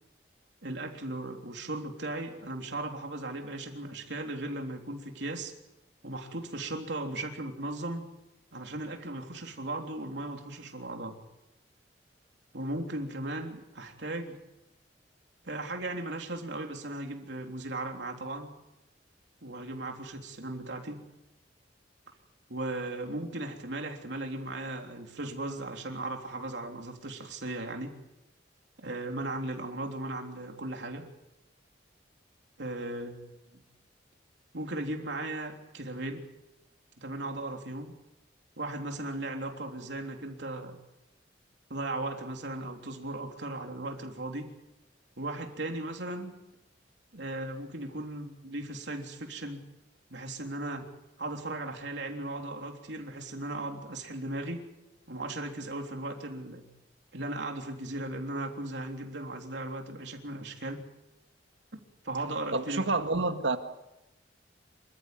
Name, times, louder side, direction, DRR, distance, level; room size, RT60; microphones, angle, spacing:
voice 1, 0.6-5.5 6.0-8.1 8.5-11.2 12.5-14.4 15.4-18.5 19.4-21.0 22.5-28.0 28.8-31.1 32.6-33.6 34.5-36.3 37.0-37.9 38.6-40.8 41.7-44.5 45.2-46.3 47.1-49.6 50.1-50.9 51.2-54.6 55.1-56.7 57.1-60.9 62.0-62.8, right 2 dB, 70° right, 3.5 m, -37 dB
voice 2, 62.5-63.6, right 3 dB, 85° right, 2.0 m, -28 dB
27.5 x 14.0 x 9.4 m
head